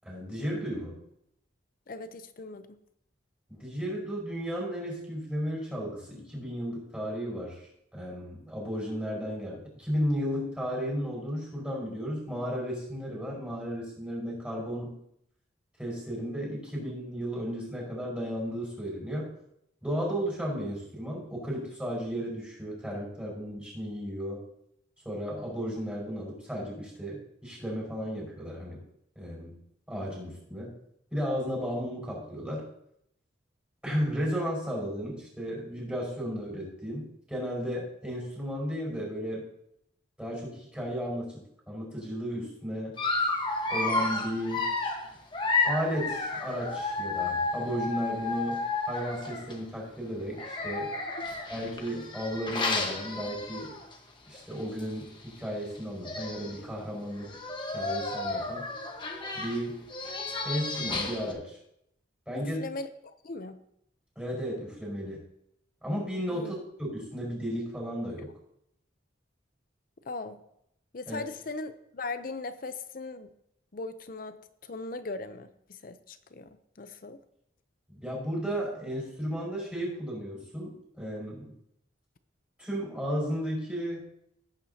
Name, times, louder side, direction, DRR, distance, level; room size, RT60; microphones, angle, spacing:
voice 1, 0.0-1.1 3.5-7.6 7.9-15.0 15.8-19.3 19.8-24.4 25.0-28.8 29.1-29.6 29.9-30.7 31.1-32.6 33.8-39.4 40.2-42.9 43.7-44.7 45.6-50.9 51.5-53.7 54.3-57.3 57.7-58.6 59.3-59.8 60.4-61.6 62.3-62.6 64.1-65.2 65.8-68.3 71.1-71.2 77.9-81.5 82.6-84.0, equal, 5° right, -4 dB, 5.1 m, -34 dB
voice 2, 1.9-2.8 62.3-63.6 66.3-66.6 70.1-70.4 70.9-73.3 73.7-74.4 74.6-76.5 76.8-77.2, left 3 dB, 45° left, 11 dB, 0.6 m, -39 dB
Dog, 43.0-49.6 50.3-53.9 54.3-54.5 54.8-54.9 55.8-55.9 56.0-56.6 57.2-61.3, left 3 dB, 25° left, 1.2 m, -32 dB
17.5 x 8.9 x 2.8 m, 0.75 s
head